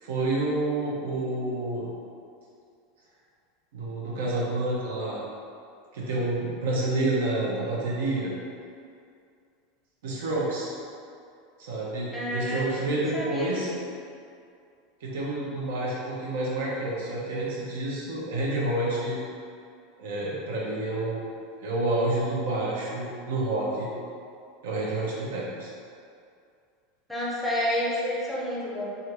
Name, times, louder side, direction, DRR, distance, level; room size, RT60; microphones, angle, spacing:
voice 1, 0.0-1.9 3.7-5.2 5.9-8.3 10.0-10.7 11.6-13.7 15.0-19.2 20.0-21.2 21.6-23.9 24.6-25.7, right 2 dB, 90° right, -5 dB, 0.7 m, -29 dB
voice 2, 12.1-12.9 13.1-13.6 27.1-28.9, equal, ahead, -7 dB, 0.6 m, -29 dB
3.3 x 2.5 x 2.9 m, 2.4 s
supercardioid pair, 165°, 0 cm